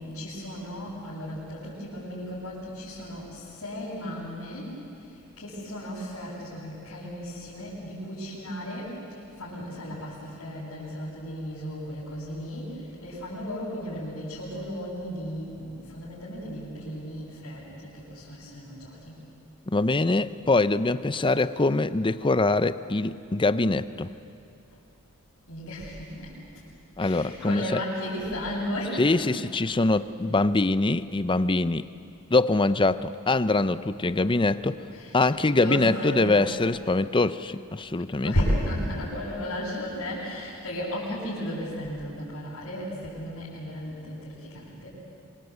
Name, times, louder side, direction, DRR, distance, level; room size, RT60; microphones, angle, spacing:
voice 1, 0.0-4.7 5.4-19.1 25.5-26.3 27.0-29.3 34.9-35.2 35.5-36.5 38.2-44.9, equal, 70° left, -9 dB, 7.4 m, -34 dB
voice 2, 19.7-24.1 27.0-27.8 29.0-31.9 32.3-34.8 35.1-38.3, left 2 dB, 20° left, 14 dB, 0.6 m, -23 dB
27.0 x 25.0 x 8.2 m, 2.6 s
head